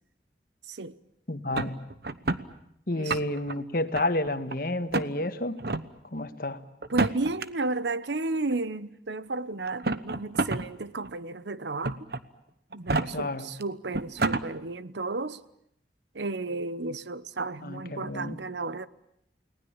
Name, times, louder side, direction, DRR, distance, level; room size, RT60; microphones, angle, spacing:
voice 1, 1.3-1.8 2.9-5.6 6.1-6.6 13.1-13.5 17.6-18.4, left 1 dB, 50° left, 1.6 m, -30 dB
sound 1, 1.5-2.4 2.9-3.5 3.9-4.5 4.9-5.1 5.6-5.8 6.8-7.4 8.5-8.6 9.7-10.6 11.0-11.1 11.8-12.2 12.7-13.0 13.6-13.7 13.9-14.4, right 3 dB, 60° right, 1.1 m, -28 dB
voice 2, 6.9-12.1 12.7-15.4 16.1-18.9, right 3 dB, 80° right, 1.0 m, -33 dB
30.0 x 19.5 x 8.8 m
head